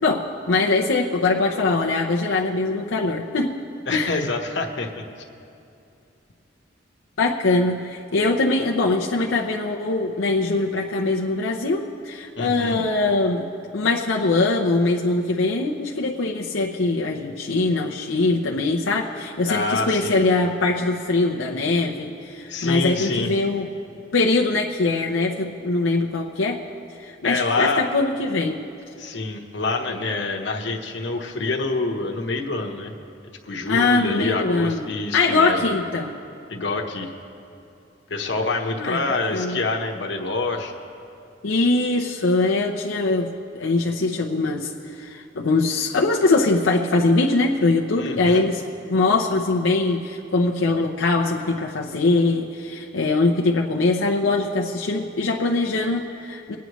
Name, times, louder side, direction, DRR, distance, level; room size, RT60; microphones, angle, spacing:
voice 1, 0.0-3.5 3.9-4.2 7.2-13.5 13.7-23.7 24.1-26.6 27.0-28.6 33.7-36.1 38.8-39.1 39.3-39.6 41.4-43.3 43.5-48.6 48.9-56.6, left 3 dB, 90° left, -1 dB, 0.7 m, -22 dB
voice 2, 3.9-5.0 12.4-12.8 19.5-20.2 22.5-23.3 27.2-27.9 29.0-32.9 33.5-35.7 36.5-37.1 38.1-40.7 48.0-48.5, left 3 dB, 65° left, 2 dB, 1.1 m, -26 dB
23.5 x 9.4 x 3.1 m, 2.6 s
head